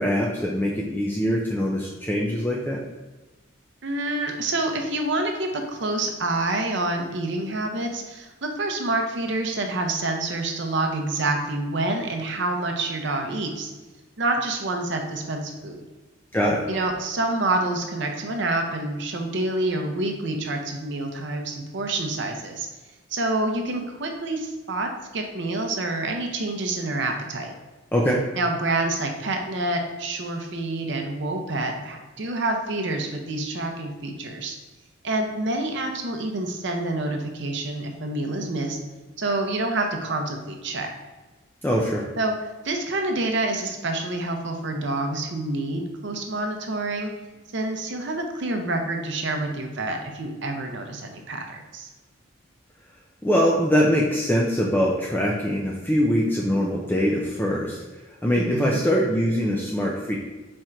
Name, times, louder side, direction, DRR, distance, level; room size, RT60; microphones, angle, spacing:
voice 1, 0.0-2.8 16.3-16.6 27.9-28.2 41.6-42.1 53.2-57.8 58.2-60.2, equal, 10° left, -3 dB, 0.4 m, -23 dB
voice 2, 3.8-13.7 14.2-15.8 16.7-22.7 23.1-27.5 28.4-34.6 35.0-38.8 39.2-40.9 42.2-42.3 42.6-47.1 47.5-51.9 58.3-58.8, right 2 dB, 55° right, 4 dB, 0.6 m, -27 dB
4.3 x 2.5 x 4.4 m, 1.2 s
head